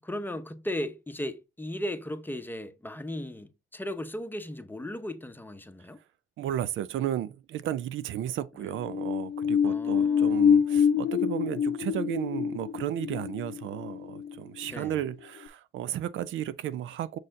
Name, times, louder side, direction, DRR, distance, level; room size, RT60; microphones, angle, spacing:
voice 1, 0.0-6.0 8.6-8.7 9.6-10.6 14.7-15.0, left 1 dB, 10° left, 0.8 m, -36 dB
voice 2, 6.4-17.2, right 11 dB, 75° right, 0.5 m, -33 dB
sound 1, 8.7-15.1 15.5-15.6, left 7 dB, 60° left, 0.6 m, -26 dB
6.5 x 4.2 x 3.7 m
cardioid pair, 90°, 20 cm